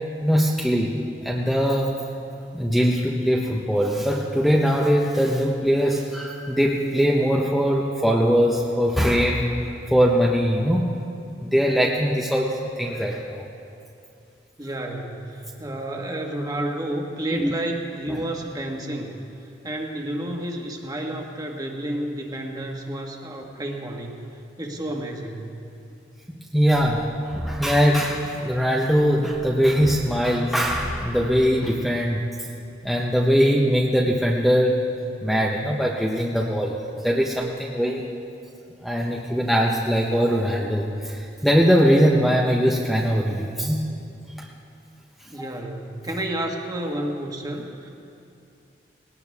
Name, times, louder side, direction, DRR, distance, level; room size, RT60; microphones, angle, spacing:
voice 1, 0.2-0.9 1.2-2.0 2.5-9.5 9.9-10.9 11.4-13.4 17.3-17.5 18.1-18.2 26.5-32.3 32.8-34.8 35.2-36.8 37.0-38.0 38.8-43.8 45.4-45.5, equal, ahead, -3 dB, 0.9 m, -21 dB
voice 2, 14.6-19.2 19.6-24.2 24.6-25.5 45.3-47.9, right 1 dB, 20° right, 1 dB, 1.6 m, -30 dB
20.0 x 18.0 x 3.6 m, 2.7 s
head